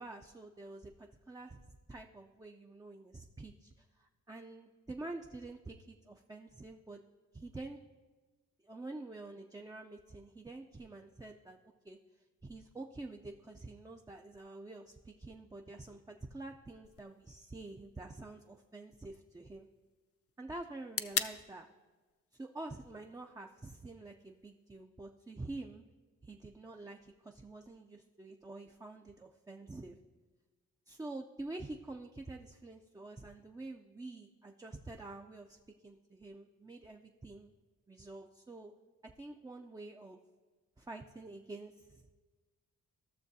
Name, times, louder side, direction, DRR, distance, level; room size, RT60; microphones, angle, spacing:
voice 1, 0.0-1.6 1.9-7.0 7.3-7.8 8.6-11.6 11.8-12.0 12.4-19.7 20.4-21.7 22.3-25.8 26.2-30.0 30.9-37.5 37.9-38.7 39.0-40.2 40.8-42.0, right 2 dB, 10° right, 2 dB, 0.4 m, -47 dB
sound 1, 16.8-24.8, left 8 dB, 45° left, 0.5 m, -45 dB
15.0 x 6.5 x 2.7 m, 1.3 s
cardioid pair, 70°, 32 cm